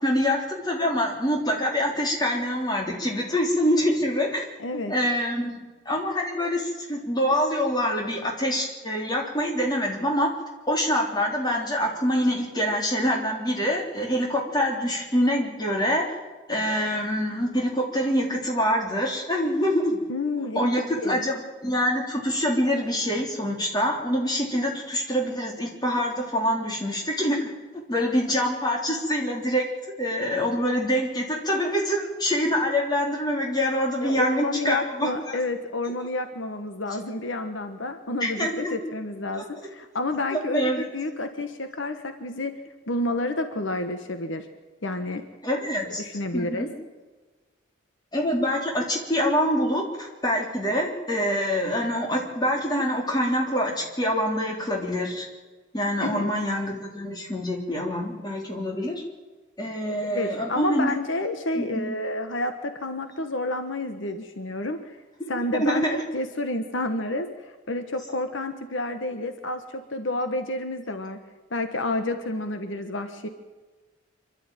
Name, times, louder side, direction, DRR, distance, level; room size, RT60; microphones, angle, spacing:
voice 1, 0.0-4.5 4.7-10.3 10.7-16.0 16.5-20.0 20.4-27.5 27.9-29.7 30.0-35.4 38.2-38.8 40.3-40.9 45.4-46.0 46.3-46.7 48.1-55.3 55.7-59.0 59.6-60.9 61.5-61.9 65.2-65.3 65.6-66.0, equal, 20° left, 0 dB, 3.6 m, -25 dB
voice 2, 4.6-4.9 20.1-20.6 21.0-21.2 28.1-28.4 34.0-42.5 42.9-44.5 44.8-45.2 46.0-46.7 56.0-56.3 60.1-65.0 65.3-71.2 71.5-73.3, left 2 dB, 70° left, 8 dB, 1.4 m, -30 dB
26.0 x 12.5 x 9.1 m, 1.3 s
head